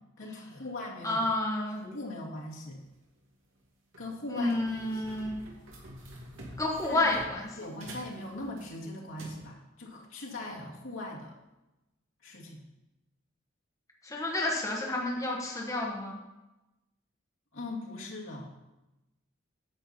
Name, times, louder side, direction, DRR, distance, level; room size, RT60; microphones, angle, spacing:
voice 1, 0.2-1.3 1.8-2.8 4.0-4.6 4.9-5.0 6.9-7.0 7.6-11.3 12.2-12.6 17.5-18.5, left 2 dB, 75° left, -3 dB, 2.4 m, -40 dB
voice 2, 1.0-1.8 4.3-5.4 6.6-7.5 14.0-16.2, left 2 dB, 15° left, -2 dB, 1.3 m, -30 dB
sound 1, 2.8-3.0 3.6-3.7 3.9-9.4, right 1 dB, 80° right, 2.5 m, -48 dB
10.0 x 7.9 x 4.4 m, 1.0 s
head